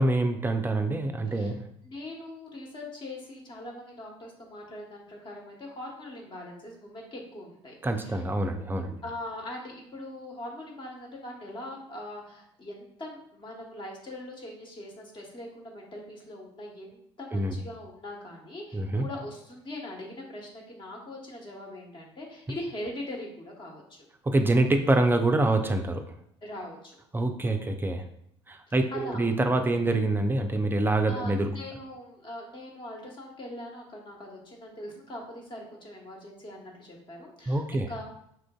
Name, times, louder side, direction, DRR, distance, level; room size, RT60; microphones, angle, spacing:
voice 1, 0.0-1.6 7.8-9.0 17.3-17.5 18.7-19.0 24.2-26.1 27.1-28.1 28.5-31.5 37.5-37.9, right 2 dB, 15° right, 5 dB, 0.4 m, -25 dB
voice 2, 1.8-7.8 8.0-8.2 9.0-24.0 26.4-27.0 28.9-29.2 31.1-38.0, left 1 dB, 35° left, -1 dB, 1.2 m, -41 dB
5.7 x 2.5 x 2.3 m, 0.72 s
hypercardioid pair, 60°, 15 cm